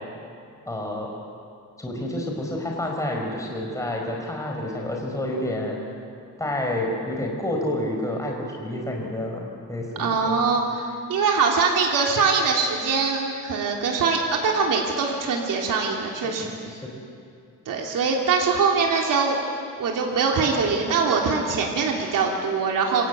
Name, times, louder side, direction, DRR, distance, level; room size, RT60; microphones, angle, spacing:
voice 1, 0.7-1.1 1.8-5.8 6.4-10.4 16.4-16.8, left 1 dB, 10° left, -1 dB, 4.5 m, -29 dB
voice 2, 10.0-16.5 17.6-19.4 19.8-23.1, right 5 dB, 85° right, 0 dB, 3.2 m, -23 dB
27.5 x 26.5 x 8.3 m, 2.4 s
wide cardioid pair, 140°, 32 cm